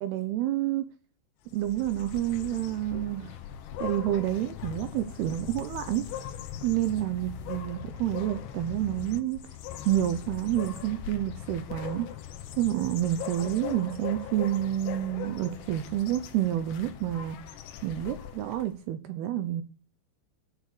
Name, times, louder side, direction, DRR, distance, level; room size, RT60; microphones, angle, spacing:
voice 1, 0.0-0.9 1.5-3.3 3.8-6.1 6.6-9.4 9.9-12.1 12.6-17.4 17.8-19.6, right 13 dB, 75° right, 2.4 m, -29 dB
sound 1, 1.5-18.8, left 10 dB, 75° left, 3.1 m, -40 dB
15.5 x 6.7 x 6.7 m
omnidirectional pair, 5.4 m